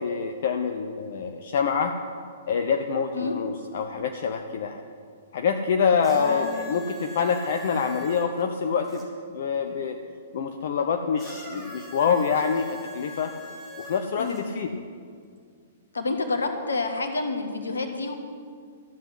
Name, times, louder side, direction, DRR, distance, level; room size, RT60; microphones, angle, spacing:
voice 1, 0.0-2.0 2.5-4.8 5.3-10.0 10.3-13.3 13.8-14.7, left 6 dB, 50° left, 5 dB, 0.8 m, -26 dB
sound 1, 6.0-9.1 11.2-14.4 15.4-15.5, left 1 dB, 15° right, 4.0 m, -43 dB
voice 2, 6.1-6.6 14.2-14.4 15.9-18.1, left 3 dB, 70° left, 5 dB, 1.6 m, -28 dB
13.0 x 7.8 x 9.7 m, 2.1 s
figure-of-eight pair, 110°, 0 cm